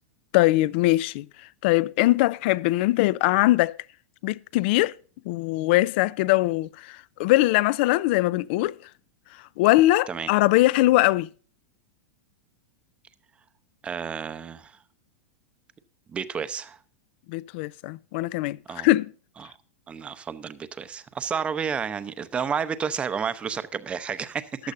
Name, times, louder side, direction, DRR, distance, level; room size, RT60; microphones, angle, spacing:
voice 1, 0.3-1.3 1.6-3.8 4.2-4.9 5.3-8.8 9.6-11.3 17.3-19.1, left 18 dB, 50° left, 0.4 m, -21 dB
voice 2, 13.8-14.8 16.1-16.8 18.7-18.9 19.4-19.6 19.9-24.5, right 6 dB, 15° right, 0.7 m, -31 dB
15.0 x 11.5 x 2.6 m
supercardioid pair, 155°, 8 cm